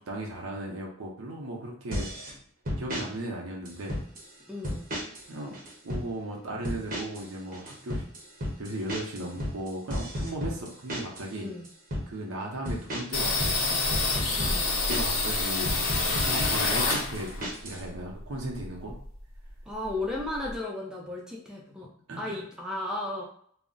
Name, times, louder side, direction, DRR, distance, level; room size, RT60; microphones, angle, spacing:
voice 1, 0.0-2.1 2.8-4.0 5.3-5.6 5.8-8.1 8.6-11.5 12.1-13.8 14.9-18.9 22.1-22.4, right 1 dB, 85° right, -1 dB, 0.6 m, -36 dB
sound 1, 1.9-2.3 2.7-3.1 3.7-4.3 4.6-5.3 5.5-6.1 6.6-7.3 7.5-11.3 11.6-12.1 12.7-15.3 15.6-17.8, equal, 40° right, 0.7 m, -33 dB
voice 2, 4.5-4.9 11.3-11.7 14.4-14.8 19.7-21.9 22.2-23.2, left 2 dB, 5° right, -3 dB, 0.4 m, -35 dB
sound 2, 13.1-17.5 17.8-19.2 19.5-19.6 19.8-20.6, left 3 dB, 85° left, 0.7 m, -28 dB
2.4 x 2.0 x 3.7 m, 0.63 s
head